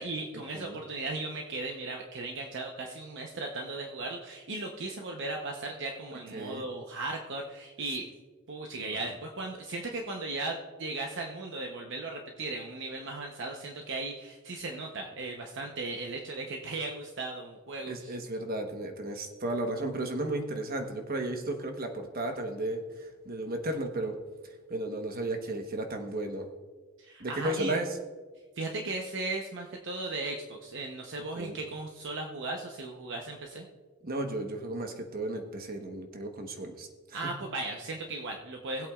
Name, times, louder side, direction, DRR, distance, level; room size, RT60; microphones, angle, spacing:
voice 1, 0.0-8.1 8.5-18.1 27.0-27.8 28.6-33.7 37.1-38.9, right 2 dB, 60° right, 2 dB, 0.9 m, -37 dB
voice 2, 6.1-6.6 8.8-9.1 17.8-24.1 24.4-26.5 27.2-27.9 31.2-31.6 34.0-37.3, right 1 dB, 45° right, 5 dB, 1.2 m, -34 dB
19.0 x 8.2 x 2.4 m, 1.4 s
head